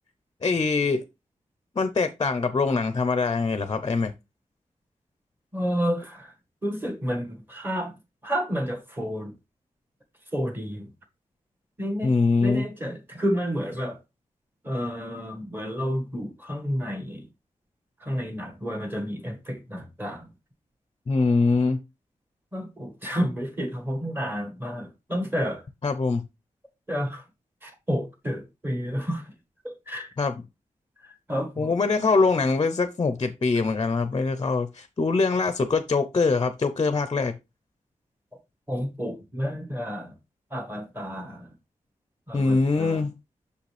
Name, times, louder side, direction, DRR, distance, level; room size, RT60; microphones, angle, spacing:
voice 1, 0.4-1.0 1.8-4.1 12.0-12.7 21.1-21.8 25.8-26.2 30.2-30.4 31.6-37.3 42.3-43.1, left 4 dB, 35° left, 0.6 m, -23 dB
voice 2, 5.5-6.3 6.6-9.3 10.3-10.9 11.8-12.1 12.4-14.0 14.6-17.3 18.0-20.3 22.5-25.6 26.9-27.2 27.6-29.3 29.6-30.1 31.0-31.8 38.7-40.2 40.5-41.5 42.3-43.0, equal, 15° right, 1.6 m, -30 dB
6.6 x 5.1 x 3.3 m
wide cardioid pair, 135°, 13 cm